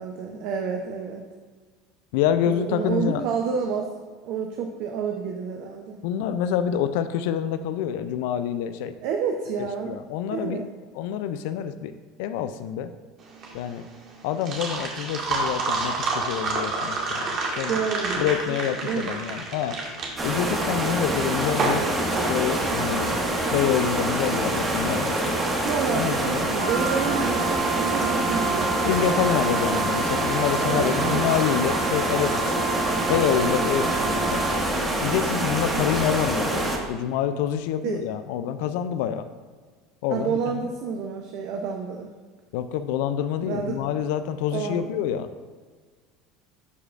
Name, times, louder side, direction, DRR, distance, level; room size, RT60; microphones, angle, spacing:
voice 1, 0.0-1.3 2.4-3.9 4.2-6.0 9.0-10.0 10.3-10.7 17.7-18.3 18.8-19.2 25.6-29.1 30.7-31.4 35.7-35.9 37.8-38.0 40.1-42.1 43.5-43.8 44.5-44.9, right 6 dB, 65° right, 3 dB, 0.7 m, -29 dB
voice 2, 2.1-3.2 6.0-8.9 9.9-10.6 10.9-11.9 12.2-12.9 13.5-13.8 14.2-17.8 18.2-19.8 20.2-21.8 22.3-23.2 23.5-25.4 25.9-26.5 28.8-32.6 33.1-34.5 35.0-39.3 40.0-40.4 42.5-45.3, left 9 dB, 70° left, 11 dB, 0.4 m, -27 dB
sound 1, 13.2-23.1, right 3 dB, 50° right, 1.8 m, -29 dB
sound 2, 20.2-36.8, right 1 dB, 20° right, 1.6 m, -26 dB
Wind instrument woodwind instrument, 26.5-34.7, right 5 dB, 80° right, 1.6 m, -30 dB
12.0 x 4.9 x 2.5 m, 1.5 s
hypercardioid pair, 80°, 0 cm